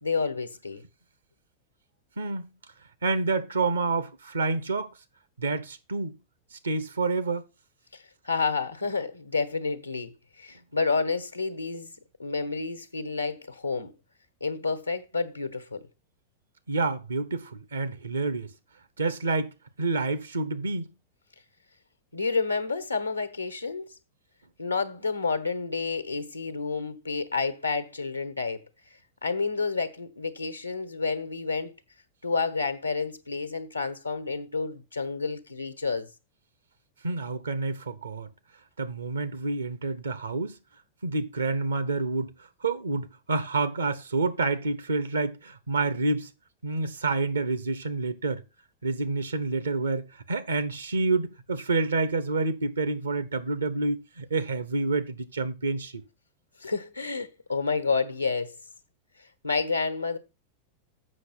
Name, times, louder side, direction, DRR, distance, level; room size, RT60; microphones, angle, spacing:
voice 1, 0.0-0.8 7.9-11.9 12.2-13.9 14.4-15.9 22.1-23.8 24.6-28.6 29.2-31.7 32.2-36.1 56.6-58.5 59.4-60.2, left 4 dB, 85° left, 1.2 m, -29 dB
voice 2, 2.2-2.5 3.0-5.0 5.4-6.2 6.5-7.4 16.7-18.5 19.0-20.9 37.0-38.3 38.8-40.6 41.0-42.3 42.6-46.3 46.6-48.4 48.8-56.0, right 3 dB, 75° right, 1.1 m, -28 dB
7.7 x 6.1 x 5.8 m
figure-of-eight pair, 90°, 0 cm